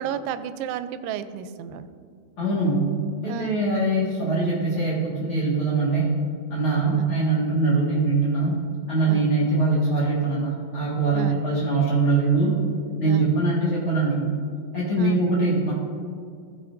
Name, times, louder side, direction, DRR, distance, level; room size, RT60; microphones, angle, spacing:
voice 1, 0.0-1.9 3.3-3.6 6.9-7.1 9.1-9.3 11.1-11.4 13.1-13.4 15.0-15.2, right 8 dB, 85° right, 11 dB, 2.9 m, -32 dB
voice 2, 2.4-2.9 3.2-6.1 6.5-8.5 8.9-12.6 13.0-14.3 14.7-15.7, right 3 dB, 75° left, -8 dB, 1.2 m, -22 dB
15.5 x 7.4 x 2.6 m, 2.3 s
omnidirectional pair, 5.3 m